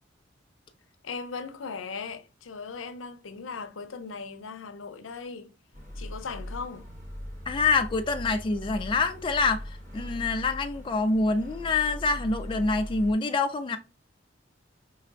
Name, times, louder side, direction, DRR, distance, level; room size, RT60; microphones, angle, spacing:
voice 1, 1.0-5.5 6.0-6.9, left 5 dB, 85° left, 0.6 m, -38 dB
sound 1, 5.7-13.1, equal, 40° right, 1.3 m, -40 dB
voice 2, 7.5-13.8, left 3 dB, 25° left, 0.3 m, -26 dB
4.8 x 3.2 x 2.4 m
head